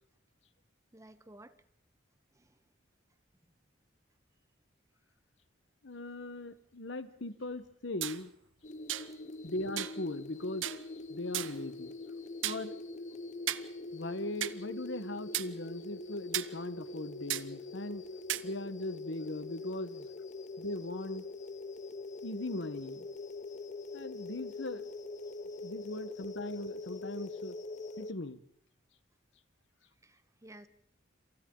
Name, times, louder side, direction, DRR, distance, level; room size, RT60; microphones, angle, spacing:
voice 1, 0.9-1.6 2.3-2.6 30.0-30.7, right 1 dB, 15° right, 12 dB, 1.0 m, -54 dB
voice 2, 5.8-8.3 9.4-10.7 11.1-11.9 12.4-12.8 13.9-18.0 18.4-20.1 20.6-21.3 22.2-23.1 23.9-24.8 25.6-27.6 28.0-28.4, left 2 dB, 70° left, 12 dB, 1.3 m, -39 dB
sound 1, 8.0-8.2 8.9-9.1 9.8-10.0 10.6-10.8 11.3-11.6 12.4-12.6 13.5-13.7 14.4-14.5 15.3-15.5 16.3-16.5 17.3-17.4 18.3-18.4, right 12 dB, 90° right, 0.8 m, -34 dB
sound 2, 8.6-28.1, left 3 dB, 40° left, 0.8 m, -43 dB
28.0 x 27.5 x 3.9 m, 0.68 s
head